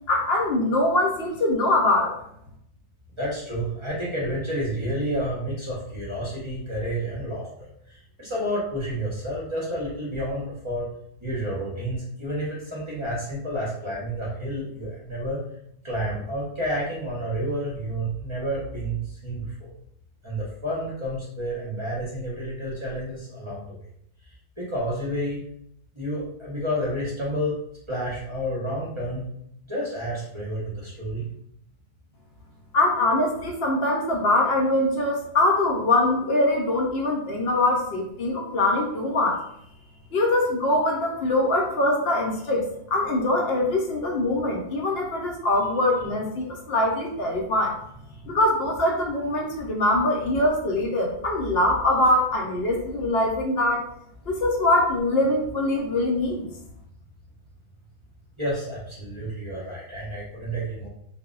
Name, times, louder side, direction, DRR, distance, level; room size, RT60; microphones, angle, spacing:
voice 1, 0.1-2.2 32.7-39.4 40.1-47.7 48.3-53.8 54.3-56.5, left 1 dB, 70° left, 0 dB, 0.7 m, -23 dB
voice 2, 3.2-10.9 11.2-15.4 15.8-19.7 20.2-23.8 24.6-25.4 25.9-27.6 27.9-29.2 29.7-31.3 48.1-48.2 58.4-60.9, equal, 30° right, -6 dB, 0.6 m, -30 dB
2.1 x 2.0 x 3.6 m, 0.73 s
omnidirectional pair, 1.2 m